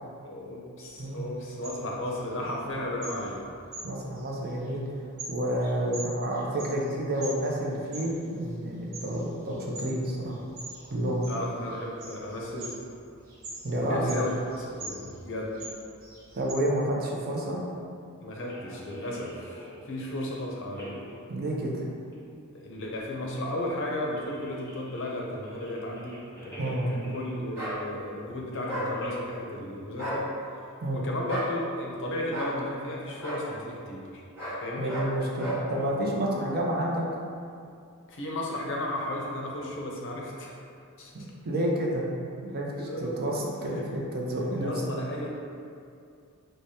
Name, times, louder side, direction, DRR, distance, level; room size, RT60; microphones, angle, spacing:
voice 1, 0.2-3.4 11.3-12.8 13.7-15.5 18.2-21.0 22.5-30.3 30.9-34.2 34.6-35.0 38.1-40.6 41.0-41.1 42.7-43.2 43.7-43.8 44.6-45.3, left 1 dB, 60° left, -2 dB, 0.6 m, -34 dB
sound 1, 0.8-16.5, right 2 dB, 65° right, 0.8 m, -45 dB
voice 2, 3.8-4.8 5.3-10.4 10.9-11.2 13.6-14.2 16.3-17.6 21.3-21.7 26.6-27.0 30.8-31.0 34.8-37.0 41.1-42.0 42.4-44.7, right 1 dB, 45° right, -2 dB, 0.5 m, -29 dB
sound 2, 18.5-20.1 20.6-21.1 22.1-22.2 22.7-22.8 23.1-23.2 23.9-27.5 27.8-28.1 28.4-29.1, equal, 10° left, 0.8 m, -46 dB
sound 3, 27.5-27.8 28.7-28.9 29.9-30.2 31.3-31.5 32.3-32.5 33.2-33.4 34.4-34.6 34.9-35.1 35.4-35.6, right 1 dB, 10° right, 1.2 m, -33 dB
4.8 x 2.1 x 2.7 m, 2.4 s
head